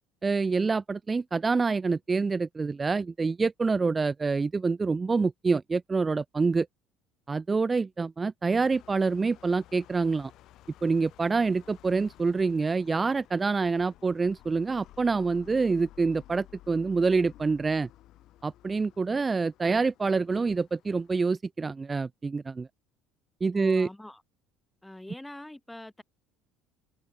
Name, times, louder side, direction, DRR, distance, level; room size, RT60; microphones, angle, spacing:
voice 1, 0.2-6.7 7.3-10.3 10.8-17.9 18.4-22.7 23.4-23.9, right 4 dB, 20° right, 0.9 m, -26 dB
sound 1, 8.5-21.3, left 14 dB, 60° left, 5.6 m, -55 dB
voice 2, 23.5-24.2 24.8-26.0, left 1 dB, 5° left, 1.6 m, -43 dB
supercardioid pair, 100°, 0 cm